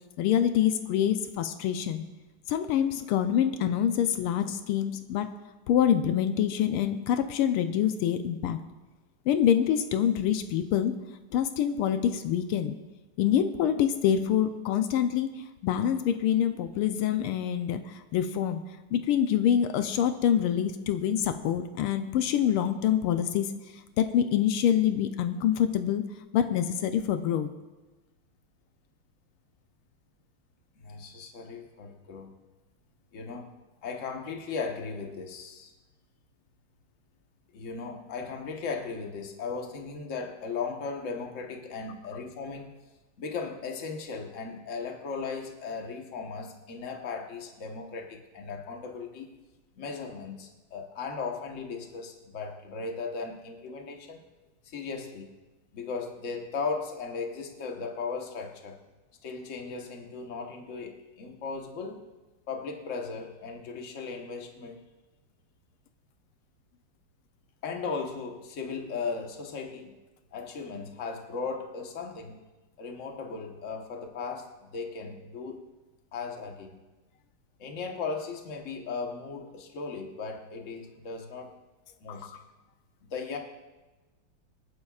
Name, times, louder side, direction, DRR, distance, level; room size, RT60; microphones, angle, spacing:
voice 1, 0.2-2.0 2.5-5.3 5.7-8.6 9.3-10.9 11.3-12.8 13.2-18.6 18.9-23.5 24.0-26.0 26.3-27.5 82.1-82.4, left 9 dB, 85° left, 9 dB, 1.6 m, -26 dB
voice 2, 30.8-32.4 33.1-33.5 33.8-35.7 37.5-42.8 43.2-49.3 49.8-54.2 54.6-55.4 55.7-58.8 59.2-62.1 62.5-64.8 67.6-70.0 70.3-72.3 72.8-75.7 76.1-76.8 77.6-81.5 82.0-82.3 83.0-83.4, left 4 dB, 40° left, 2 dB, 1.4 m, -37 dB
26.5 x 9.7 x 2.4 m, 1.2 s
omnidirectional pair, 2.4 m